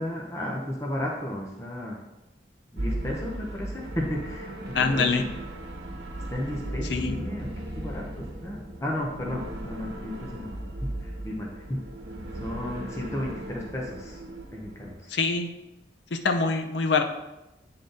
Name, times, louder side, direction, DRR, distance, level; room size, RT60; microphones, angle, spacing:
voice 1, 0.0-2.0 2.7-5.3 6.3-10.5 10.8-11.8 12.3-14.2 14.5-15.1, left 1 dB, 15° left, -2 dB, 0.8 m, -34 dB
sound 1, 2.8-14.9, right 1 dB, 65° right, 1.0 m, -37 dB
voice 2, 4.7-5.2 6.9-7.2 15.1-15.5 16.1-17.0, left 4 dB, 75° left, 6 dB, 0.7 m, -24 dB
8.4 x 3.9 x 3.9 m, 0.97 s
head